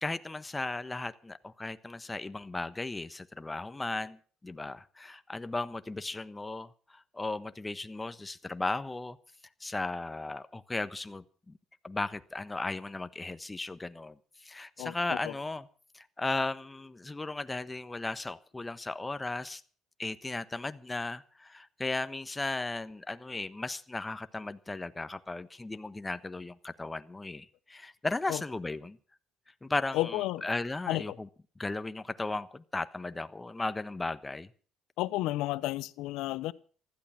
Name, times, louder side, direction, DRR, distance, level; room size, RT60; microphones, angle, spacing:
voice 1, 0.0-9.2 9.6-11.5 11.8-15.7 15.9-19.6 20.0-29.0 29.6-31.3 31.6-34.5, left 2 dB, 15° left, 1.2 m, -36 dB
voice 2, 14.8-15.3 28.3-28.4 29.9-30.5 30.9-31.2 35.0-36.5, left 16 dB, 80° left, 0.9 m, -32 dB
15.5 x 14.0 x 5.9 m
supercardioid pair, 85°, 0 cm